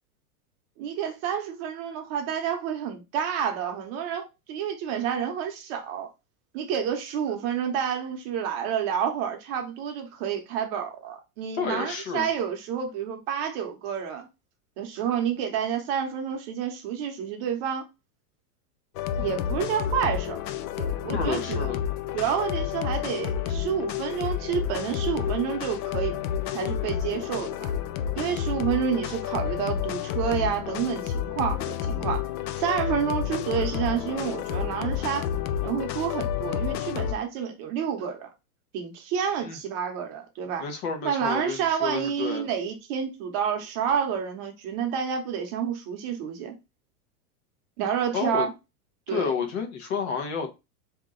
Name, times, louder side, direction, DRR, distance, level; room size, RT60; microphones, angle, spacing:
voice 1, 0.8-6.1 6.5-14.3 14.8-17.9 19.1-20.4 20.8-21.7 22.1-26.2 26.5-27.7 28.1-32.2 32.6-35.3 35.6-38.3 38.7-40.6 41.0-46.5 47.8-48.5 49.1-49.3, right 8 dB, 40° right, 0.8 m, -29 dB
voice 2, 11.6-12.3 21.1-21.8 39.4-39.6 40.6-42.5 48.1-48.5 49.1-50.5, left 6 dB, 45° left, 1.0 m, -30 dB
sound 1, 18.9-37.1, left 9 dB, 75° left, 0.6 m, -30 dB
3.8 x 2.9 x 3.7 m
supercardioid pair, 150°, 46 cm